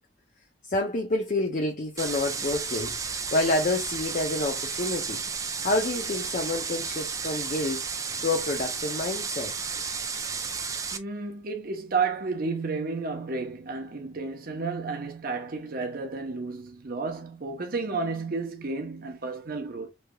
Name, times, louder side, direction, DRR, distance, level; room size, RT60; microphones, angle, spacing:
voice 1, 0.6-5.2 5.6-9.5, left 2 dB, 45° left, 0.5 m, -28 dB
sound 1, 2.0-11.0, right 5 dB, 20° right, 0.3 m, -32 dB
voice 2, 10.9-19.9, right 4 dB, 50° right, 0.7 m, -32 dB
3.1 x 2.8 x 2.2 m
head